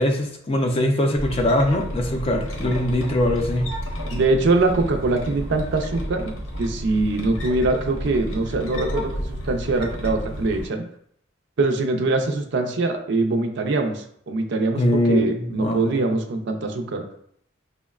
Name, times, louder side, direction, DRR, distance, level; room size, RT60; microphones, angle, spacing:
voice 1, 0.0-3.7 14.8-16.0, left 1 dB, 30° left, 3 dB, 0.5 m, -22 dB
sound 1, 1.2-10.7, equal, 85° left, 0.8 m, -31 dB
voice 2, 4.1-6.3 6.6-10.8 11.6-17.0, right 3 dB, 60° right, 4 dB, 0.5 m, -23 dB
5.5 x 2.1 x 2.3 m, 0.67 s
head